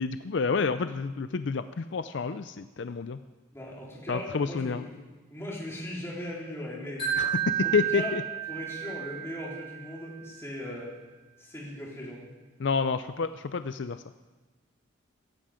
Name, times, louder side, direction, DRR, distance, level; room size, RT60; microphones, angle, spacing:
voice 1, 0.0-3.2 4.1-4.8 7.2-8.2 12.6-14.0, left 5 dB, 65° left, 11 dB, 0.5 m, -29 dB
voice 2, 3.5-4.9 5.3-7.0 7.6-8.2 8.5-10.9 11.4-12.3, left 1 dB, 15° left, -5 dB, 4.0 m, -38 dB
Wind chime, 7.0-10.1, right 10 dB, 30° left, 5.7 m, -32 dB
16.5 x 15.0 x 5.1 m, 1.2 s
head